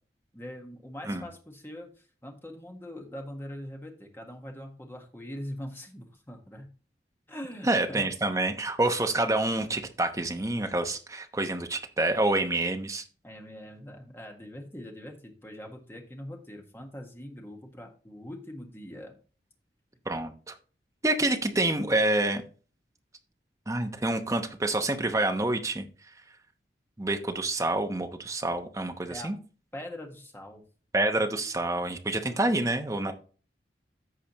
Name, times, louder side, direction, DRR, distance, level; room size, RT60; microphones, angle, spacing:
voice 1, 0.3-6.7 7.3-8.1 13.2-19.2 21.4-21.6 29.1-29.3 29.7-30.6 32.3-32.8, equal, 15° left, 2 dB, 1.5 m, -42 dB
voice 2, 7.6-13.0 20.1-20.5 21.0-22.4 23.7-25.9 27.0-29.4 30.9-33.1, right 2 dB, 15° right, 5 dB, 0.9 m, -27 dB
14.5 x 4.9 x 3.0 m, 0.38 s
head